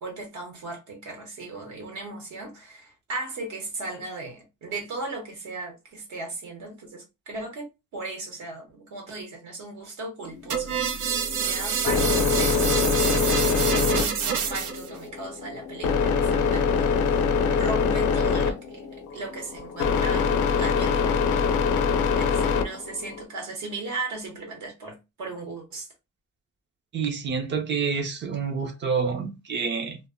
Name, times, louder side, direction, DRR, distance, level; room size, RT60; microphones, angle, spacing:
voice 1, 0.0-7.7 7.9-21.5 22.2-25.9, right 2 dB, 70° right, 0.9 m, -37 dB
sound 1, 10.2-23.2, left 5 dB, 80° left, 0.5 m, -24 dB
sound 2, 10.5-14.9, right 7 dB, 85° right, 0.5 m, -27 dB
voice 2, 26.9-30.0, right 5 dB, 40° right, 0.5 m, -28 dB
2.1 x 2.0 x 3.5 m
cardioid pair, 175°, 30 cm